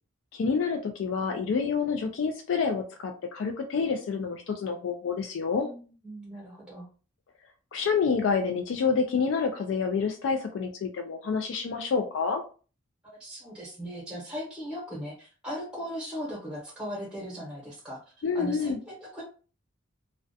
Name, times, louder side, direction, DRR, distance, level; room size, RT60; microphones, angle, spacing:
voice 1, 0.3-5.7 7.7-12.4 18.2-18.8, left 5 dB, 65° left, 5 dB, 0.3 m, -28 dB
voice 2, 5.6-6.9 13.0-18.0 18.3-19.2, equal, 5° right, -4 dB, 0.8 m, -38 dB
2.4 x 2.1 x 2.6 m, 0.38 s
head